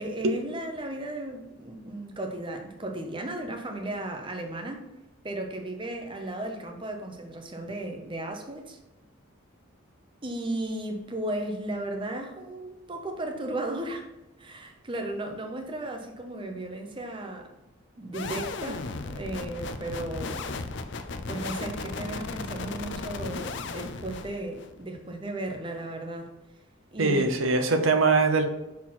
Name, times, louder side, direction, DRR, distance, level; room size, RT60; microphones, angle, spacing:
voice 1, 0.0-4.8 5.2-8.8 10.2-14.1 14.4-17.5 18.0-20.5 21.3-26.3 26.9-27.4, right 1 dB, 25° right, 4 dB, 0.8 m, -35 dB
sound 1, 18.1-24.8, left 3 dB, 55° left, 0.4 m, -35 dB
voice 2, 27.0-28.5, right 3 dB, 75° right, 6 dB, 0.8 m, -22 dB
5.9 x 4.3 x 4.2 m, 0.98 s
head